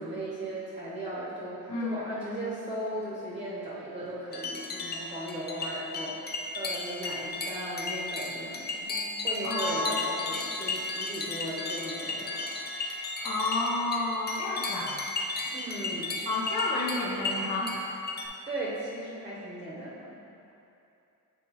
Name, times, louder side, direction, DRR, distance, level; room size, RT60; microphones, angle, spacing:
voice 1, 0.0-6.1 6.5-12.5 15.5-16.1 18.5-20.1, right 1 dB, 15° right, -7 dB, 0.9 m, -37 dB
sound 1, 4.3-18.3, left 3 dB, 30° left, 0.4 m, -35 dB
voice 2, 9.4-10.0 13.2-14.9 16.2-18.0, left 2 dB, 70° left, -5 dB, 1.3 m, -30 dB
8.0 x 4.3 x 2.9 m, 2.7 s
cardioid pair, 155°, 38 cm